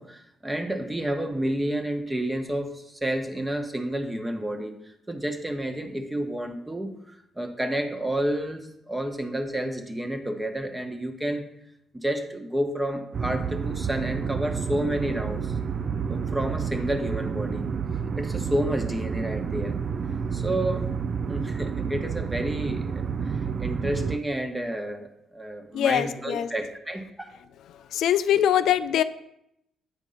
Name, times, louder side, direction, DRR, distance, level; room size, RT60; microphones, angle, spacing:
voice 1, 0.0-4.7 5.1-11.4 12.0-15.5 16.1-17.7 18.2-19.7 20.1-20.9 21.2-27.4, right 1 dB, 10° right, 6 dB, 1.1 m, -30 dB
sound 1, 13.1-24.2, right 6 dB, 50° right, 0.4 m, -30 dB
voice 2, 25.7-26.5 27.9-29.0, left 10 dB, 80° left, 12 dB, 0.3 m, -22 dB
8.7 x 4.5 x 5.5 m, 0.78 s
cardioid pair, 90°, 0 cm